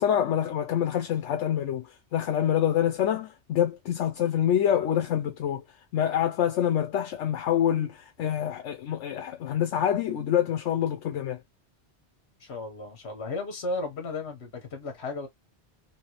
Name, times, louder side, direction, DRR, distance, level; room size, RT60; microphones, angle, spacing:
voice 1, 0.0-5.6 5.9-11.4, left 10 dB, 85° left, 0.9 m, -26 dB
voice 2, 12.4-15.3, left 3 dB, 65° left, 1.4 m, -34 dB
3.1 x 3.0 x 3.0 m
omnidirectional pair, 1.2 m